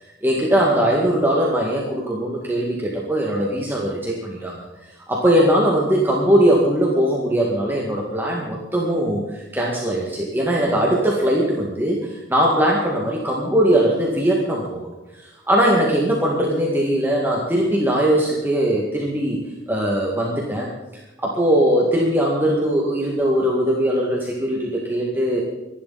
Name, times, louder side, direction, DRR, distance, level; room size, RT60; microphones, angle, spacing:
voice 1, 0.2-4.6 5.1-14.9 15.2-19.4 19.7-20.7 21.2-25.4, right 1 dB, 10° right, -3 dB, 2.1 m, -20 dB
25.5 x 11.5 x 4.3 m, 0.99 s
head